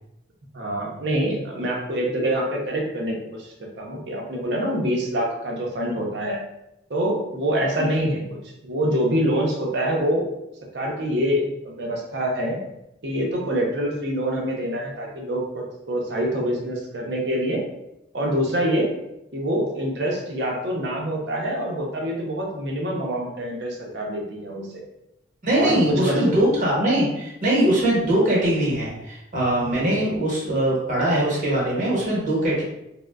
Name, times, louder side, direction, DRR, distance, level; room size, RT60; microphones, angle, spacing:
voice 1, 0.5-3.5 3.8-6.4 6.9-10.3 10.7-12.6 13.0-17.6 18.1-18.9 19.3-24.8 25.6-26.4 29.8-29.9, equal, 65° right, -1 dB, 0.6 m, -25 dB
voice 2, 7.8-8.1 25.4-32.6, right 1 dB, 45° right, -5 dB, 1.1 m, -22 dB
3.6 x 2.1 x 2.2 m, 0.85 s
head